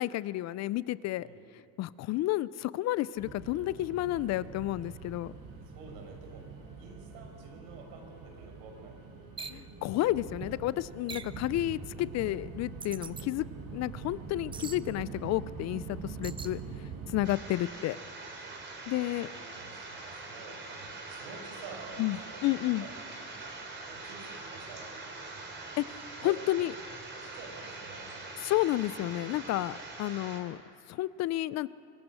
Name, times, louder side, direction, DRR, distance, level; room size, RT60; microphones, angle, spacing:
voice 1, 0.0-1.3 1.8-5.3 9.5-13.5 13.7-16.6 17.1-18.0 18.9-19.3 22.0-22.8 25.8-26.7 28.4-30.6 30.9-31.7, left 16 dB, 45° left, 19 dB, 0.4 m, -31 dB
voice 2, 1.1-1.5 5.8-6.5 6.8-9.0 13.1-13.3 19.0-22.9 23.9-24.9 26.2-26.5 27.2-28.3, right 4 dB, 80° right, 3 dB, 5.3 m, -49 dB
sound 1, 3.2-17.3, right 5 dB, 55° right, 5.2 m, -44 dB
sound 2, 9.4-9.6 11.1-11.4 12.8-13.3 14.5-14.8 16.2-16.5, right 5 dB, 15° right, 0.4 m, -42 dB
sound 3, 17.2-30.4, right 3 dB, 30° right, 3.5 m, -43 dB
24.5 x 18.0 x 6.2 m, 2.5 s
cardioid pair, 135°, 38 cm